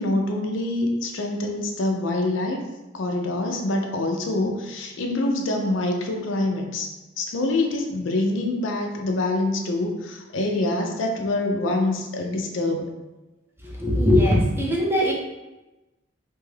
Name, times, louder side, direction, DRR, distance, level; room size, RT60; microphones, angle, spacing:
voice 1, 0.0-2.6 2.9-6.9 7.2-12.9, left 2 dB, 75° left, 2 dB, 0.5 m, -25 dB
voice 2, 13.6-15.1, left 1 dB, 10° right, -4 dB, 0.5 m, -20 dB
2.6 x 2.3 x 3.2 m, 1.0 s
head